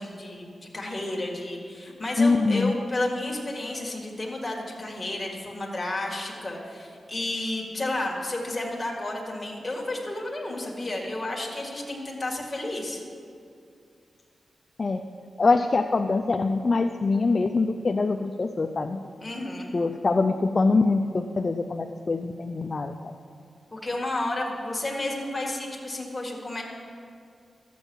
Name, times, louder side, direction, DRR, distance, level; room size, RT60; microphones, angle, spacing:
voice 1, 0.0-13.0 19.2-19.7 23.7-26.6, left 2 dB, 15° left, -2 dB, 1.8 m, -32 dB
voice 2, 2.2-2.8 14.8-15.0 15.4-19.0 19.7-23.1, left 3 dB, 35° left, 6 dB, 0.4 m, -24 dB
12.5 x 8.2 x 6.2 m, 2.4 s
wide cardioid pair, 155°, 0 cm